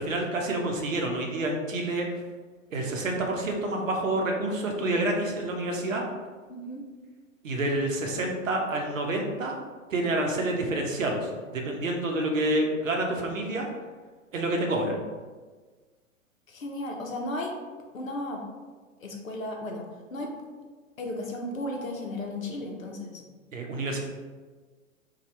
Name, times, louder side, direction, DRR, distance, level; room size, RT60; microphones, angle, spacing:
voice 1, 0.0-2.1 2.7-6.0 7.4-9.6 9.9-13.7 14.3-15.0 23.5-24.0, right 1 dB, 75° right, 1 dB, 0.7 m, -28 dB
voice 2, 6.5-6.8 16.5-17.5 17.9-18.4 19.0-20.3 21.0-23.2, left 1 dB, 80° left, 1 dB, 0.7 m, -35 dB
2.7 x 2.4 x 3.0 m, 1.4 s
figure-of-eight pair, 105°, 39 cm